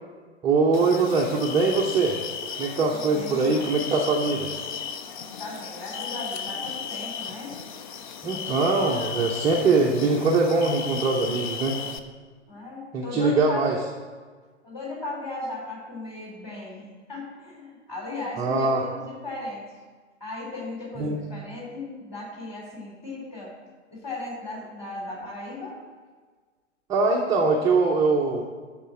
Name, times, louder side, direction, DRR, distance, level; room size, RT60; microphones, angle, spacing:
voice 1, 0.4-2.2 2.6-4.5 8.2-11.8 12.9-13.8 18.4-18.8 21.0-21.2 26.9-28.4, right 3 dB, 10° right, -2 dB, 0.6 m, -22 dB
sound 1, 0.7-12.0, left 7 dB, 40° left, 0.6 m, -35 dB
voice 2, 2.9-3.7 5.4-7.6 12.5-13.8 14.6-16.8 17.1-19.6 20.2-23.5 23.9-25.8, left 2 dB, 15° left, -4 dB, 3.6 m, -36 dB
12.0 x 4.3 x 7.4 m, 1.5 s
figure-of-eight pair, 115°, 37 cm